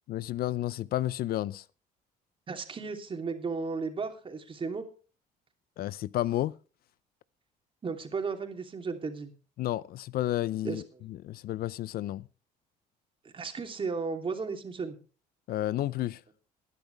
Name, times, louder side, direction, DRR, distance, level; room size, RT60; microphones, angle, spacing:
voice 1, 0.1-1.6 5.8-6.5 9.6-10.8 11.2-12.3 15.5-16.2, left 14 dB, 65° left, 0.5 m, -31 dB
voice 2, 2.5-4.9 7.8-9.3 10.6-11.0 13.2-14.9, right 4 dB, 30° right, 2.9 m, -34 dB
20.0 x 10.5 x 3.4 m
cardioid pair, 110°, 17 cm